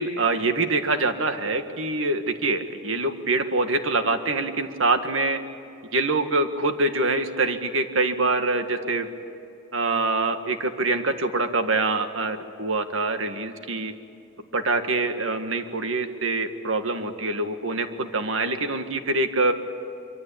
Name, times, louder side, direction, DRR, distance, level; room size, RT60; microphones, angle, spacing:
voice 1, 0.0-5.4 5.9-9.1 9.7-13.9 14.5-19.5, right 3 dB, 75° right, 7 dB, 1.9 m, -25 dB
25.0 x 24.0 x 8.7 m, 2.7 s
head